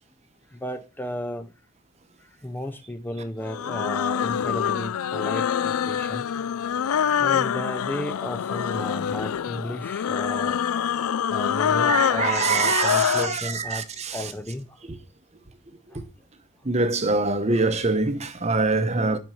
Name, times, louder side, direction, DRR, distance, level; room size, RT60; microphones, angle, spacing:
voice 1, 0.5-1.5 2.2-6.3 7.0-10.6 11.3-13.8 14.1-14.8 15.9-16.0, left 1 dB, 10° left, 0.5 m, -34 dB
sound 1, 3.5-13.4, left 8 dB, 80° left, 0.4 m, -25 dB
voice 2, 11.2-11.5 11.9-14.3 14.9-15.0 15.9-16.0 16.6-19.2, right 3 dB, 30° right, 0.9 m, -25 dB
9.0 x 5.4 x 7.1 m
head